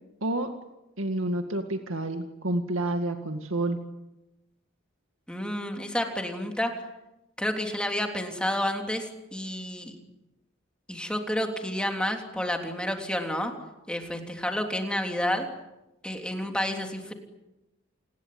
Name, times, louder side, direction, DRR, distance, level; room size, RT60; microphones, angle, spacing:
voice 1, 1.0-3.8, right 1 dB, 90° right, 6 dB, 2.1 m, -29 dB
voice 2, 5.3-6.8 7.4-10.0 10.9-13.5 13.9-15.5 16.0-17.1, left 1 dB, 5° left, 3 dB, 3.3 m, -30 dB
28.5 x 20.5 x 9.5 m, 0.95 s
head